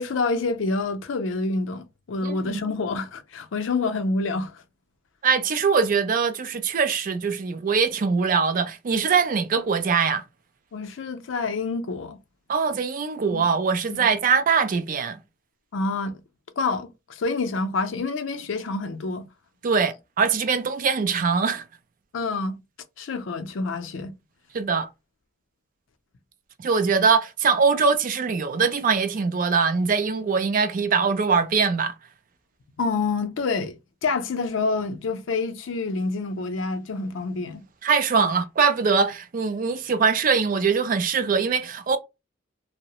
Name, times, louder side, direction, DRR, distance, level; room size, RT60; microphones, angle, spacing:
voice 1, 0.0-4.6 10.7-12.2 13.3-13.4 13.9-14.0 15.7-16.1 16.6-19.3 22.1-22.6 23.0-24.1 32.8-33.8 34.0-37.6 38.2-38.3, left 3 dB, 85° left, 0.5 m, -27 dB
voice 2, 2.2-2.6 5.2-10.2 12.5-15.2 19.6-21.6 24.5-24.9 26.6-31.9 37.8-42.0, right 5 dB, 45° right, 0.4 m, -22 dB
2.7 x 2.0 x 2.8 m
head